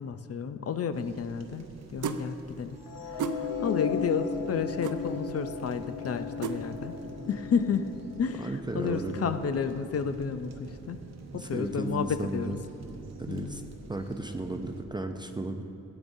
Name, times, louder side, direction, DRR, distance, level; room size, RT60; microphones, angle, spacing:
voice 1, 0.0-2.8 3.1-7.0 7.3-7.9 8.2-12.6 13.3-13.7, left 6 dB, 50° left, 10 dB, 0.4 m, -31 dB
sound 1, 0.9-14.9, right 3 dB, 55° right, 0.9 m, -47 dB
sound 2, 2.0-2.2 3.2-3.4 4.8-5.0 6.4-6.6, right 6 dB, 70° right, 0.5 m, -31 dB
sound 3, 2.9-9.1, left 6 dB, 90° left, 0.8 m, -36 dB
voice 2, 8.4-9.3 11.3-12.6 13.2-13.6 13.9-15.6, right 2 dB, 15° right, 5 dB, 0.4 m, -34 dB
16.0 x 8.7 x 2.6 m, 2.7 s
wide cardioid pair, 140°, 31 cm